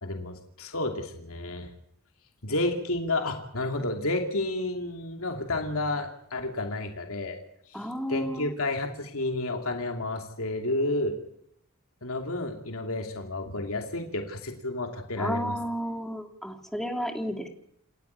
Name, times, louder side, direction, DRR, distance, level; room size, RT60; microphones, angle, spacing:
voice 1, 0.0-1.7 2.4-7.4 7.6-11.2 12.0-15.6, left 2 dB, 80° left, 3 dB, 2.7 m, -31 dB
voice 2, 7.7-8.5 15.2-17.5, equal, ahead, 4 dB, 2.7 m, -32 dB
29.0 x 13.0 x 9.5 m, 0.75 s
head